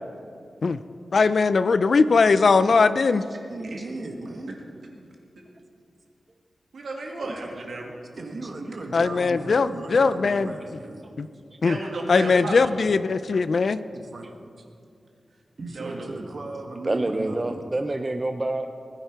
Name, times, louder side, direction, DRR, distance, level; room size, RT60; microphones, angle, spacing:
voice 1, 1.1-3.2 8.9-10.5 11.2-11.3 11.6-11.8 12.1-13.8, left 4 dB, 60° left, 13 dB, 0.4 m, -20 dB
voice 2, 3.5-4.6 7.2-7.6 8.1-11.0 13.8-14.3 14.6-14.7 15.6-17.6, right 2 dB, 55° right, 3 dB, 1.6 m, -37 dB
voice 3, 6.7-7.9 11.6-12.8 15.7-16.1, right 2 dB, 75° right, 0 dB, 2.2 m, -33 dB
voice 4, 16.8-18.8, right 2 dB, 25° right, 6 dB, 0.5 m, -27 dB
19.5 x 10.5 x 4.6 m, 2.4 s
wide cardioid pair, 110°, 0 cm